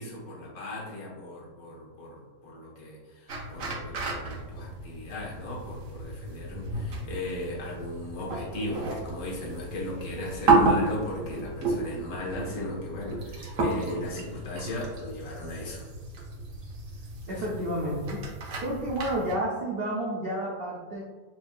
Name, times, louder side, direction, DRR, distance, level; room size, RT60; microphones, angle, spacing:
voice 1, 0.0-15.9 17.3-17.4 18.5-18.6, left 1 dB, 60° left, -4 dB, 1.5 m, -37 dB
sound 1, 3.3-19.3, right 3 dB, 55° right, 1.1 m, -31 dB
voice 2, 17.3-18.2 18.6-21.0, right 1 dB, 80° right, -4 dB, 0.5 m, -30 dB
7.1 x 2.6 x 2.2 m, 1.4 s
omnidirectional pair, 1.8 m